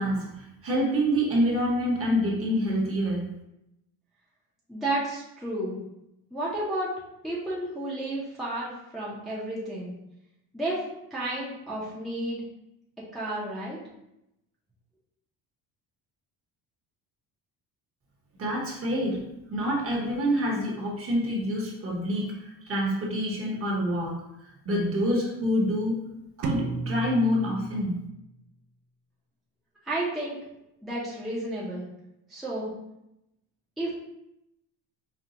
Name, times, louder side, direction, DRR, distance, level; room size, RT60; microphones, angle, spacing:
voice 1, 0.0-3.3 18.4-19.2 19.5-24.2 24.6-26.0 26.4-28.0, equal, 35° right, -2 dB, 1.1 m, -27 dB
voice 2, 4.7-5.8 6.3-6.9 7.2-10.0 10.5-10.8 11.1-12.4 13.1-13.8 29.8-30.4 30.8-31.9 32.3-32.7 33.8-33.9, right 1 dB, ahead, -8 dB, 0.7 m, -31 dB
sound 1, 26.4-28.3, right 4 dB, 70° right, 0.6 m, -34 dB
5.1 x 2.3 x 2.8 m, 0.85 s
cardioid pair, 135°, 40 cm